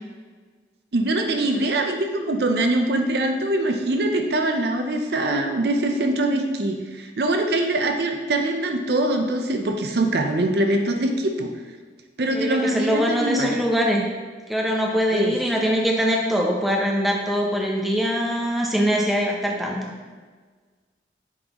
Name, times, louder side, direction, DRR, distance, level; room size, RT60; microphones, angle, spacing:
voice 1, 0.9-11.5 12.2-13.6 15.1-15.4, right 1 dB, 70° right, 4 dB, 0.6 m, -23 dB
voice 2, 12.3-14.0 14.5-19.9, equal, ahead, -1 dB, 0.6 m, -23 dB
8.5 x 3.9 x 3.0 m, 1.4 s
head